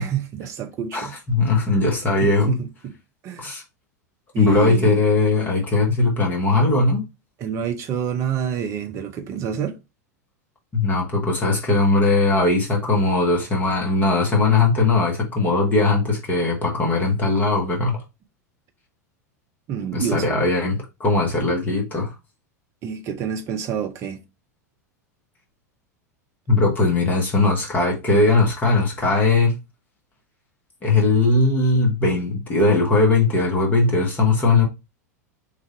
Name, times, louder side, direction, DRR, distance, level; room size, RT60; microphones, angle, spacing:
voice 1, 0.0-1.1 2.2-2.9 3.2-3.5 4.3-5.0 7.4-9.8 19.7-20.3 22.8-24.2, right 8 dB, 35° right, 0.7 m, -28 dB
voice 2, 0.9-2.6 3.4-3.6 4.4-7.0 10.7-18.0 19.9-22.1 26.5-29.5 30.8-34.7, left 3 dB, 20° left, 1.4 m, -19 dB
3.3 x 2.6 x 3.9 m
figure-of-eight pair, 85°, 9 cm